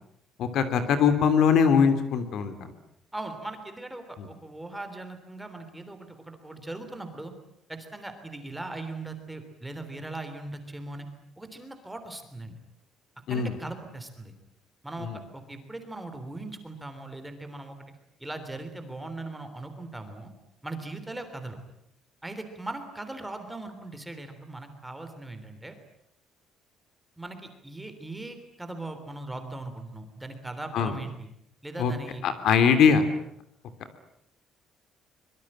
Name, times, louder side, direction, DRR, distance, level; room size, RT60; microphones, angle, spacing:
voice 1, 0.4-2.7 4.2-4.3 13.3-13.5 15.0-15.2 30.7-30.9 31.8-31.9 32.2-33.0, left 6 dB, 55° left, 10 dB, 3.0 m, -22 dB
voice 2, 3.1-7.3 7.7-11.1 11.4-12.6 13.3-14.3 14.8-17.8 18.2-20.3 20.6-21.6 22.2-25.7 27.2-31.3 31.6-32.2 32.6-32.7, right 2 dB, 5° right, 7 dB, 3.4 m, -39 dB
25.0 x 23.0 x 8.9 m, 0.75 s
cardioid pair, 170°, 0 cm